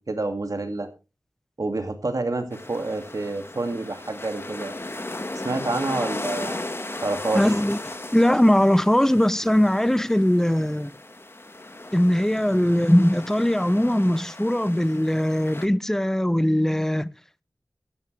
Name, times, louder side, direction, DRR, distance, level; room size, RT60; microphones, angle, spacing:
voice 1, 0.1-0.9 1.6-4.7 5.4-6.6 7.0-7.5, right 2 dB, 55° right, 2.3 m, -28 dB
sound 1, 2.5-15.7, left 2 dB, 35° left, 1.5 m, -36 dB
voice 2, 7.3-7.8 8.1-10.9 11.9-17.1, left 1 dB, 5° left, 0.6 m, -20 dB
15.5 x 11.0 x 3.3 m
wide cardioid pair, 75°, 7 cm